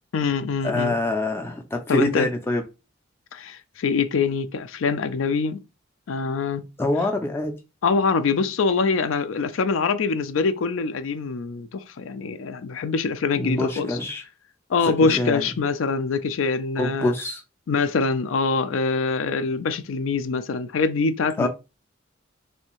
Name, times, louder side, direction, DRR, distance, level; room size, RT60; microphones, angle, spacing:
voice 1, 0.1-0.9 1.9-2.3 3.3-5.6 6.1-6.6 7.8-14.0 14.7-17.1 17.7-21.5, left 4 dB, 80° left, 0.4 m, -24 dB
voice 2, 0.6-2.6 6.8-7.5 13.4-14.2 14.9-15.5 16.8-17.4 21.4-21.5, left 2 dB, 10° left, 0.4 m, -25 dB
3.2 x 2.7 x 2.9 m
head